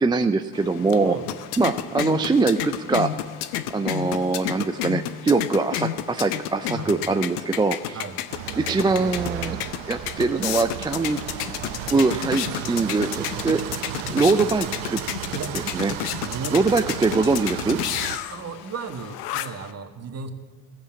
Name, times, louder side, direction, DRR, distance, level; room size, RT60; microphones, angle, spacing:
voice 1, 0.0-1.2 1.6-3.1 3.7-8.0 8.6-9.6 9.9-11.2 11.9-13.8 14.1-15.0 15.7-15.9 16.5-17.8, right 3 dB, 10° right, 7 dB, 0.4 m, -22 dB
sound 1, 0.5-19.7, left 12 dB, 85° left, 0.8 m, -32 dB
sound 2, 8.3-18.2, right 13 dB, 70° right, 0.8 m, -34 dB
voice 2, 16.2-16.6 18.3-20.3, right 5 dB, 35° right, 6 dB, 1.5 m, -35 dB
15.0 x 7.7 x 8.5 m, 1.4 s
hypercardioid pair, 75°, 44 cm